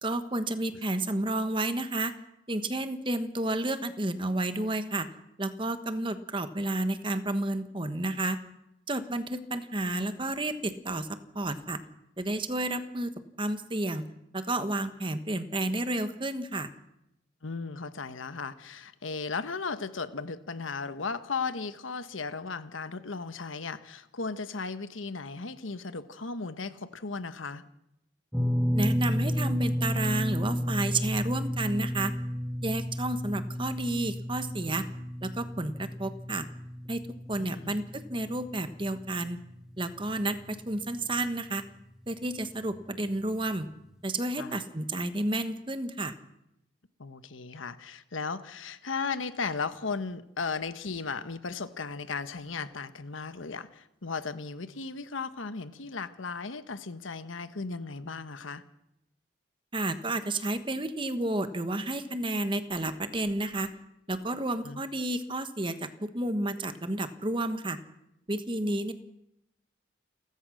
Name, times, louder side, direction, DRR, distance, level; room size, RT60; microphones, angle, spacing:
voice 1, 0.0-2.1 2.5-5.1 5.4-8.4 8.9-11.8 12.2-13.1 13.4-14.0 14.3-16.7 28.7-32.1 32.6-34.9 35.2-36.5 36.9-37.0 37.3-39.4 39.8-41.6 42.1-43.7 44.0-46.1 59.7-63.7 64.1-67.8 68.3-68.9, right 2 dB, 25° right, 1.3 m, -31 dB
voice 2, 17.4-27.6 37.4-37.8 44.4-44.7 47.0-58.6 64.6-64.8, left 4 dB, 85° left, 1.2 m, -36 dB
sound 1, 28.3-40.6 40.8-41.1 42.7-42.8, equal, 5° right, 1.6 m, -32 dB
29.0 x 14.5 x 6.4 m
head